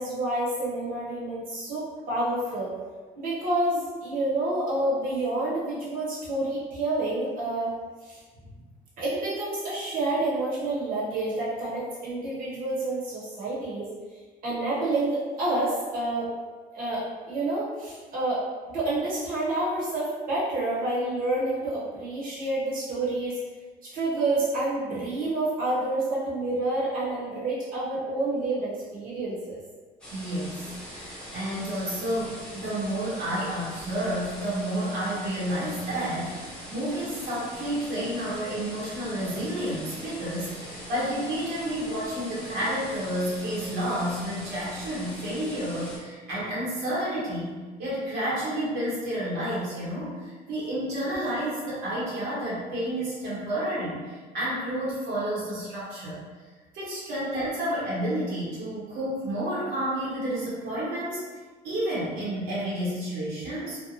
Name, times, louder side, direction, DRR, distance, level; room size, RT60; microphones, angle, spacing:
voice 1, 0.0-2.7 3.2-7.7 8.0-8.2 9.0-13.9 14.4-16.3 16.7-18.4 18.7-23.4 23.8-29.6, right 2 dB, 55° right, -8 dB, 1.0 m, -28 dB
sound 1, 30.0-46.0, equal, 5° left, 0.8 m, -42 dB
voice 2, 30.1-47.5 47.8-56.2 56.7-61.2 61.6-63.8, right 1 dB, 80° right, -8 dB, 1.0 m, -30 dB
2.7 x 2.1 x 2.8 m, 1.4 s
cardioid pair, 110°, 17 cm